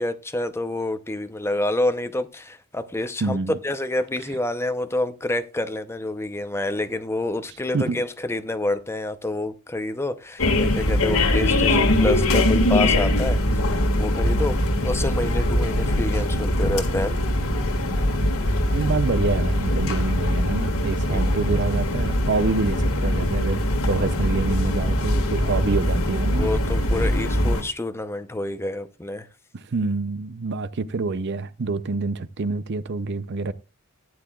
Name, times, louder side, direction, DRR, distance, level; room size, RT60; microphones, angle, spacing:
voice 1, 0.0-3.4 3.6-13.4 14.0-14.6 14.8-17.2 21.1-21.2 26.4-29.3, left 1 dB, 10° left, 0.7 m, -28 dB
voice 2, 3.2-3.6 7.7-8.0 18.2-18.3 18.7-23.6 23.9-26.5 29.5-33.5, right 3 dB, 55° right, 0.6 m, -26 dB
sound 1, 10.4-27.6, left 1 dB, 70° left, 1.9 m, -22 dB
15.5 x 9.7 x 2.3 m
head